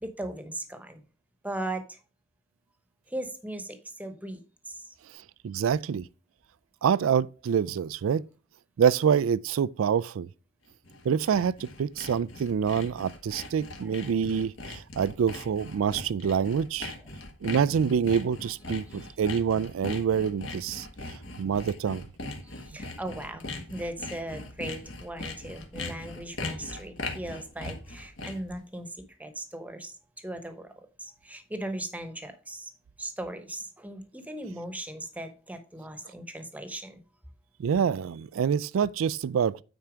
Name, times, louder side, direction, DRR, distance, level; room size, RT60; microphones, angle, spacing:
voice 1, 0.0-1.0 1.4-1.8 3.1-4.4 4.7-4.8 22.7-28.9 29.2-29.9 30.2-30.7 31.2-32.7 33.0-37.0, right 1 dB, 10° right, 1.0 m, -38 dB
voice 2, 5.4-6.1 6.8-8.2 8.8-10.3 11.0-16.9 17.4-22.1 37.6-39.6, right 7 dB, 85° right, 0.3 m, -26 dB
Sawing, 10.7-28.5, left 2 dB, 70° left, 1.6 m, -40 dB
9.1 x 4.5 x 5.0 m
head